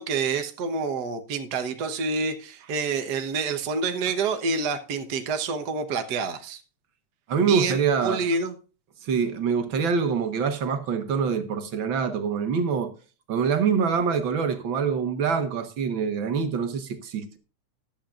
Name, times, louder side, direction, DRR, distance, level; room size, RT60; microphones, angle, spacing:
voice 1, 0.0-6.6 7.4-7.8 8.0-8.5, right 4 dB, 80° right, 0.9 m, -27 dB
voice 2, 7.3-8.2 9.0-12.9 13.3-17.4, right 6 dB, 55° right, 1.6 m, -25 dB
14.5 x 11.0 x 2.5 m
omnidirectional pair, 3.4 m